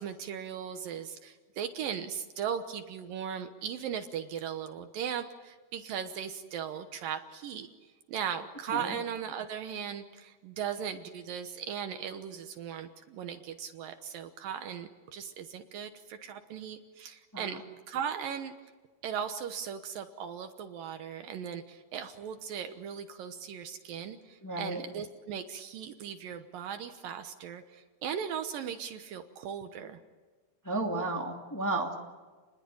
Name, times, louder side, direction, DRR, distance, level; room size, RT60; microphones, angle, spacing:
voice 1, 0.0-7.7 8.1-17.6 17.9-18.5 19.0-30.0, right 8 dB, 70° right, 8 dB, 2.5 m, -38 dB
voice 2, 24.4-24.8 30.6-31.9, right 2 dB, 5° left, 1 dB, 1.7 m, -33 dB
29.5 x 21.0 x 8.7 m, 1.4 s
omnidirectional pair, 4.6 m